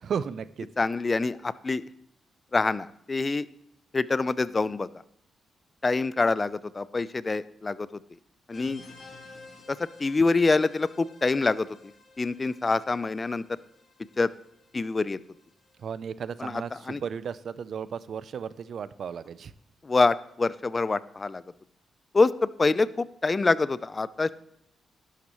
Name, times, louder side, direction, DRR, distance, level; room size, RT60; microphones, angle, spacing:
voice 1, 0.0-0.7 15.8-19.5, right 7 dB, 65° right, 16 dB, 0.6 m, -34 dB
voice 2, 0.8-1.8 2.5-3.5 3.9-4.9 5.8-7.9 8.5-8.8 9.7-11.7 12.2-13.4 14.2-14.3 14.7-15.2 16.4-16.5 16.9-17.0 19.8-21.4 22.1-24.3, left 3 dB, 35° left, 17 dB, 0.6 m, -25 dB
sound 1, 8.5-15.8, left 3 dB, 60° left, 4.6 m, -52 dB
11.5 x 11.5 x 3.1 m, 0.74 s
supercardioid pair, 55°, 0 cm